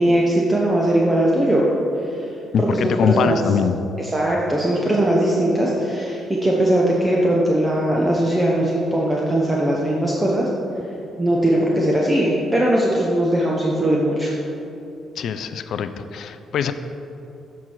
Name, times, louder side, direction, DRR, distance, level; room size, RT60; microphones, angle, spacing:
voice 1, 0.0-1.7 2.0-2.3 2.6-3.4 4.0-10.5 11.2-14.3, right 1 dB, 20° right, -3 dB, 0.9 m, -20 dB
voice 2, 2.5-3.8 15.2-16.7, left 7 dB, 65° left, 10 dB, 0.3 m, -22 dB
7.2 x 4.6 x 4.6 m, 2.8 s
hypercardioid pair, 50°, 0 cm